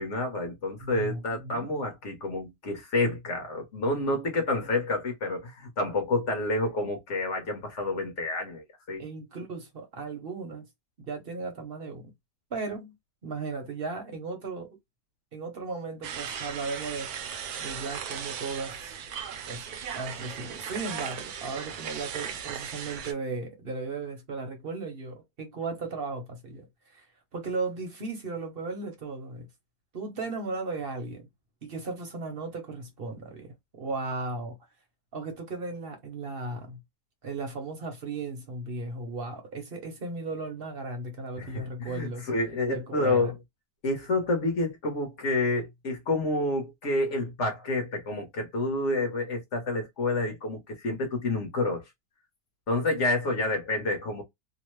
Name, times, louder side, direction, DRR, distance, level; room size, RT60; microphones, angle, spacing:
voice 1, 0.0-9.0 41.4-43.3 43.8-51.8 52.7-54.2, left 2 dB, 50° left, 1.1 m, -29 dB
voice 2, 0.8-1.7 9.0-10.7 11.0-12.1 12.5-12.9 13.2-14.7 15.3-17.1 17.6-18.8 19.5-19.6 19.9-26.6 26.9-27.1 27.3-29.5 29.9-31.3 31.6-34.6 35.1-36.8 37.2-42.3 42.7-43.3, right 3 dB, 45° right, 0.8 m, -36 dB
sound 1, 16.0-23.1, right 8 dB, 70° right, 1.1 m, -37 dB
3.0 x 2.1 x 3.0 m
omnidirectional pair, 1.8 m